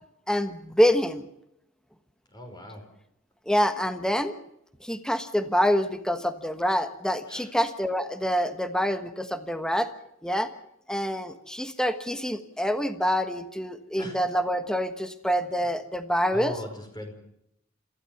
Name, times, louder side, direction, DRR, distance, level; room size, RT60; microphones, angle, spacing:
voice 1, 0.3-1.2 3.5-4.3 4.8-9.9 10.2-10.5 10.9-16.5, equal, 5° left, 9 dB, 1.2 m, -26 dB
voice 2, 2.3-2.8 7.3-7.5 14.0-14.2 16.3-17.1, equal, 20° left, 4 dB, 5.3 m, -39 dB
26.5 x 15.5 x 7.1 m, 0.79 s
head